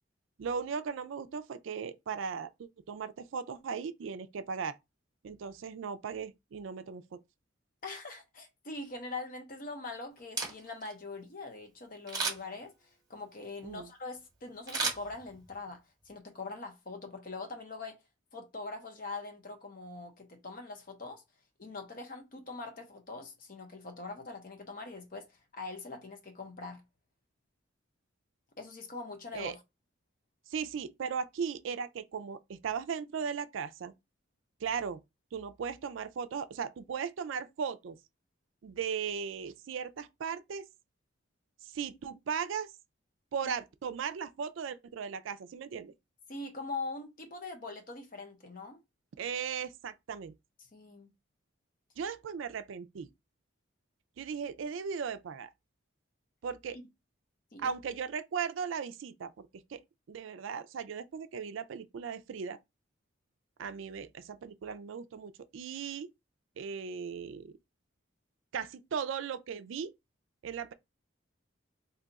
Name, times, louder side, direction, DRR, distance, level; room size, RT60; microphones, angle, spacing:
voice 1, 0.4-4.8 5.2-7.2 13.6-13.9 29.3-29.5 30.5-33.9 34.6-35.0 35.3-38.0 38.6-40.7 41.6-42.7 43.3-45.9 49.2-50.3 52.0-53.1 54.2-55.5 56.4-56.8 57.6-59.8 60.1-62.6 63.6-66.1 66.6-67.6 68.5-69.9 70.4-70.7, right 6 dB, 70° right, 0.4 m, -37 dB
voice 2, 7.8-12.7 13.1-15.8 16.1-18.0 18.3-21.2 21.6-25.3 25.5-26.8 28.6-29.6 46.3-48.8 50.7-51.1 56.7-56.8 57.5-57.7, left 3 dB, 45° left, 0.7 m, -42 dB
Camera, 10.2-10.9 12.1-12.6 14.7-15.6 16.0-16.1, right 4 dB, 20° right, 0.9 m, -34 dB
2.7 x 2.3 x 3.9 m
head